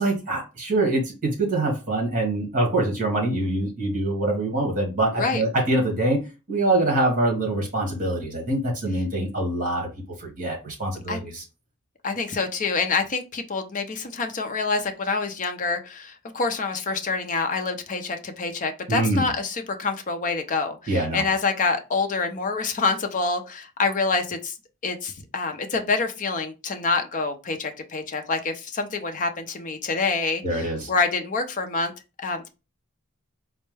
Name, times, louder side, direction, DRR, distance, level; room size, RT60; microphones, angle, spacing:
voice 1, 0.0-6.2 6.5-9.9 10.2-11.4 18.9-19.3 20.9-21.2 30.4-30.9, right 2 dB, 40° right, 1.6 m, -24 dB
voice 2, 5.1-5.4 11.1-11.2 12.0-24.6 24.8-31.9 32.2-32.5, left 4 dB, 35° left, 0.5 m, -26 dB
4.4 x 2.1 x 3.2 m
head